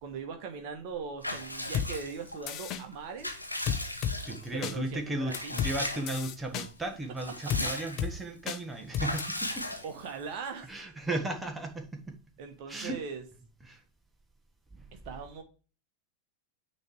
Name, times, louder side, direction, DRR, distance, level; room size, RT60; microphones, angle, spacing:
voice 1, 0.0-3.3 4.5-5.6 7.4-8.0 9.8-10.7 12.4-13.2 14.9-15.4, right 5 dB, 45° right, 5 dB, 1.2 m, -40 dB
Water / Bathtub (filling or washing) / Liquid, 1.2-2.5 2.9-4.6 5.3-6.2 6.6-6.7 7.0-8.2 9.0-10.2, left 1 dB, 85° left, 1.0 m, -37 dB
sound 1, 1.7-1.9 2.5-2.8 3.7-4.2 4.6-4.8 5.3-5.7 6.1-6.7 7.5-7.6 8.0-8.1 8.5-8.6 8.9-9.2, left 8 dB, 35° left, 0.8 m, -31 dB
voice 2, 4.2-9.6 10.7-12.2 12.7-13.0 13.7-13.8, right 2 dB, 10° right, 3 dB, 1.4 m, -35 dB
9.3 x 3.3 x 4.8 m, 0.36 s
figure-of-eight pair, 90°, 0 cm